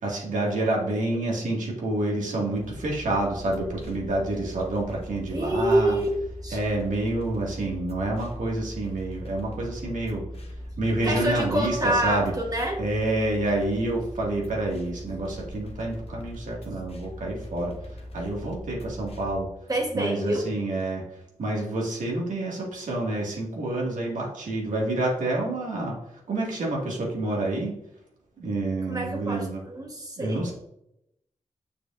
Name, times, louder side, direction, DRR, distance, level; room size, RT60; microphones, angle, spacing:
voice 1, 0.0-6.0 6.5-10.2 10.8-12.3 12.8-19.5 19.9-21.0 21.4-26.0 26.3-27.8 28.4-29.6 30.2-30.5, right 2 dB, 90° right, -2 dB, 1.9 m, -28 dB
sound 1, 2.5-19.4, left 1 dB, 50° left, 0.9 m, -40 dB
voice 2, 5.3-6.1 6.4-6.6 11.0-12.8 19.7-20.5 28.9-30.5, right 1 dB, 30° right, 1 dB, 1.2 m, -26 dB
6.9 x 6.5 x 2.5 m, 0.79 s
wide cardioid pair, 130°, 13 cm